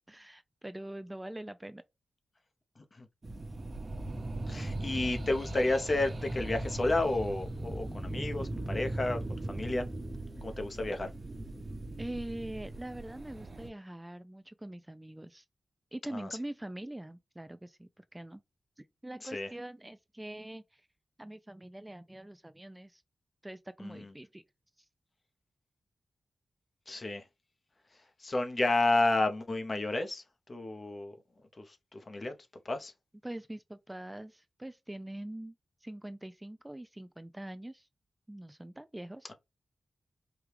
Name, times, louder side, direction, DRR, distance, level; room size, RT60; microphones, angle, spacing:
voice 1, 0.1-1.8 12.0-15.5 15.9-18.4 18.8-20.9 21.2-23.0 23.4-24.4 24.8-24.9 33.2-35.6 35.8-37.9 38.3-39.3, right 1 dB, 15° right, 0.3 m, -43 dB
sound 1, 3.2-13.7, right 1 dB, 40° right, 1.1 m, -39 dB
voice 2, 4.5-9.2 9.5-9.9 10.4-11.1 16.1-16.3 19.3-19.5 23.8-24.1 26.9-27.2 28.2-30.2 30.5-31.1 31.6-32.3 32.6-32.9, left 2 dB, 40° left, 0.8 m, -31 dB
4.7 x 2.3 x 3.3 m
wide cardioid pair, 85°, 0 cm